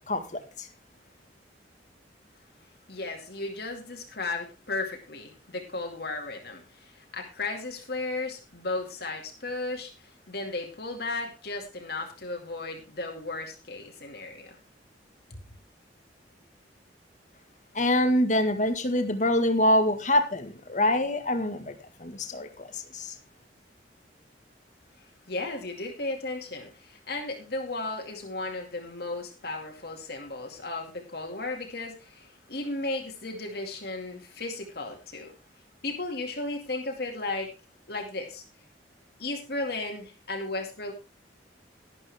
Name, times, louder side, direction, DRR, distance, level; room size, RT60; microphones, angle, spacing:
voice 1, 0.1-0.4 17.7-21.7 22.0-23.1, left 1 dB, 40° left, 7 dB, 1.8 m, -25 dB
voice 2, 2.9-14.6 15.3-15.4 25.3-35.3 35.8-37.5 37.9-38.4 39.2-40.9, left 2 dB, 60° left, 2 dB, 2.4 m, -35 dB
12.0 x 11.5 x 3.6 m, 0.30 s
head